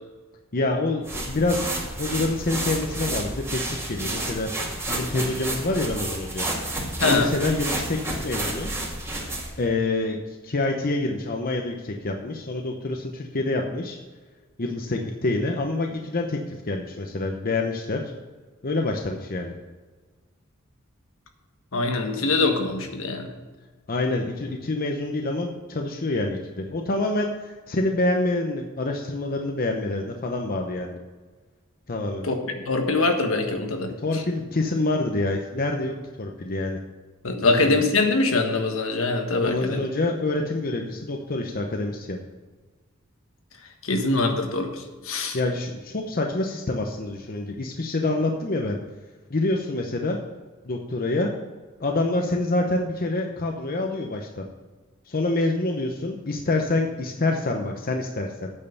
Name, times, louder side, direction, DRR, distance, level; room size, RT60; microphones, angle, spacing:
voice 1, 0.5-4.5 4.9-6.5 7.0-8.7 9.6-14.0 14.6-18.0 18.6-19.5 23.9-27.3 27.7-31.0 31.9-32.3 34.0-36.8 37.4-37.8 39.4-42.2 45.3-48.8 49.3-50.2 50.6-51.3 51.8-54.5 55.1-58.5, left 2 dB, 45° left, 2 dB, 0.8 m, -26 dB
sound 1, 1.0-9.6, right 1 dB, 15° right, 1.9 m, -30 dB
voice 2, 7.0-7.3 21.7-23.3 32.2-32.3 32.6-34.2 37.2-39.8 43.8-45.4, left 3 dB, 70° left, 4 dB, 1.4 m, -23 dB
8.8 x 6.6 x 6.7 m, 1.3 s
head